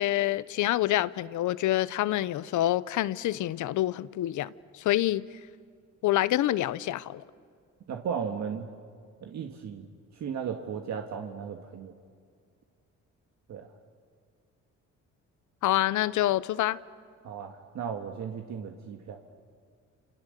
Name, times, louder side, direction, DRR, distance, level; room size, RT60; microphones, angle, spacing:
voice 1, 0.0-5.3 6.0-7.2 15.6-16.8, left 14 dB, 80° left, 0.8 m, -27 dB
voice 2, 7.9-8.7 9.2-9.9 10.1-11.9 13.5-13.7 17.2-19.2, right 7 dB, 65° right, 1.8 m, -35 dB
29.5 x 28.5 x 6.7 m
cardioid pair, 90°, 30 cm